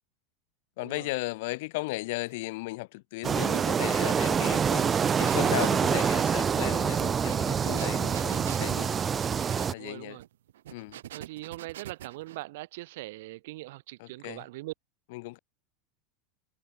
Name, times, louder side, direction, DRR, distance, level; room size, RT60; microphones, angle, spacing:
voice 1, 0.8-8.9 9.6-10.2 10.7-11.0 14.0-14.4 15.1-15.4, left 22 dB, 70° left, 1.1 m, -36 dB
sound 1, 3.2-9.7, right 7 dB, 25° right, 1.0 m, -26 dB
sound 2, 5.0-12.4, right 12 dB, 90° right, 6.1 m, -45 dB
voice 2, 9.8-10.2 11.1-14.7, right 19 dB, 75° right, 5.5 m, -41 dB
supercardioid pair, 120°, 0 cm